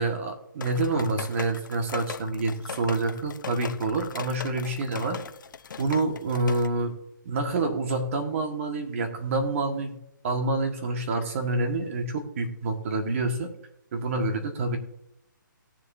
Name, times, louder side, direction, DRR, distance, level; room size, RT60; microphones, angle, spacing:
voice 1, 0.0-5.2 5.8-6.9 7.2-10.0 10.2-13.5 13.9-14.8, right 2 dB, 40° right, 4 dB, 1.7 m, -27 dB
sound 1, 0.6-6.7, left 6 dB, 65° left, 0.6 m, -39 dB
18.0 x 6.9 x 2.7 m, 0.80 s
hypercardioid pair, 160°, 11 cm